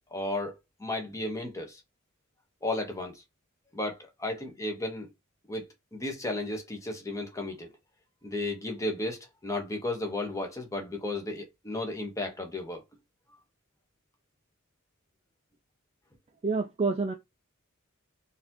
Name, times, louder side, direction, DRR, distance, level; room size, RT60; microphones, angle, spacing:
voice 1, 0.1-1.8 2.6-3.2 3.7-5.1 5.5-5.6 5.9-7.7 8.2-12.8, left 2 dB, 15° left, 0.9 m, -34 dB
voice 2, 16.4-17.1, right 4 dB, 30° right, 0.3 m, -27 dB
4.0 x 2.6 x 2.7 m
head